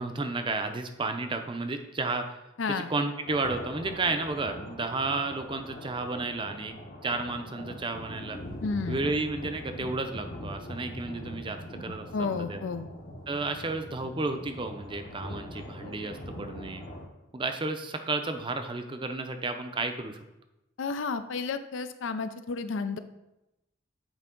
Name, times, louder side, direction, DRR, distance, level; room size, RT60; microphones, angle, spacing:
voice 1, 0.0-2.4 2.7-6.7 7.0-8.4 8.9-12.6 13.3-16.8 17.3-20.2, right 3 dB, 25° right, 7 dB, 0.5 m, -32 dB
voice 2, 2.6-2.9 8.6-9.0 12.1-12.9 20.8-23.0, left 4 dB, 75° left, 10 dB, 0.5 m, -31 dB
sound 1, 3.3-17.1, left 1 dB, 45° left, 1.0 m, -42 dB
8.3 x 4.6 x 3.7 m, 0.94 s
head